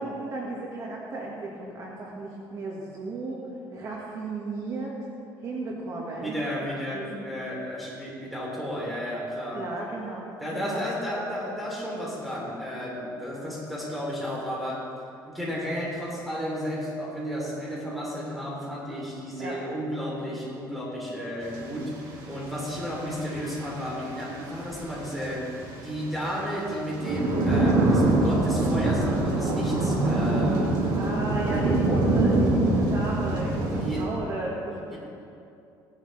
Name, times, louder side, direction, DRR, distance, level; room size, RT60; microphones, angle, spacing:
voice 1, 0.0-5.1 5.4-6.4 6.9-7.2 9.5-10.9 19.4-19.6 30.9-35.0, right 2 dB, 40° right, -3 dB, 1.6 m, -34 dB
voice 2, 6.2-9.7 10.4-14.9 15.3-30.8 33.4-34.1 34.9-35.0, equal, ahead, -6 dB, 3.2 m, -33 dB
sound 1, 21.4-21.6 21.8-34.0, right 2 dB, 55° right, 2.3 m, -24 dB
17.5 x 11.0 x 3.2 m, 2.6 s
cardioid pair, 155°, 8 cm